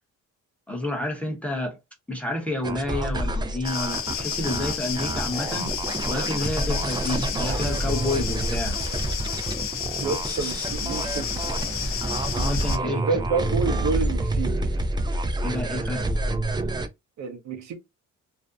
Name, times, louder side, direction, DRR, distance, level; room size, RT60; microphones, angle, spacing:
voice 1, 0.7-1.8 2.1-5.7 6.1-8.8 12.3-13.1 15.4-16.1, left 2 dB, 5° left, 0.8 m, -29 dB
sound 1, 2.6-16.9, right 2 dB, 15° right, 0.3 m, -28 dB
sound 2, 3.6-12.8, left 6 dB, 45° left, 0.4 m, -31 dB
voice 2, 10.0-11.6 13.0-14.6 17.2-17.7, right 4 dB, 65° right, 0.7 m, -29 dB
2.6 x 2.1 x 2.3 m
cardioid pair, 90°, 30 cm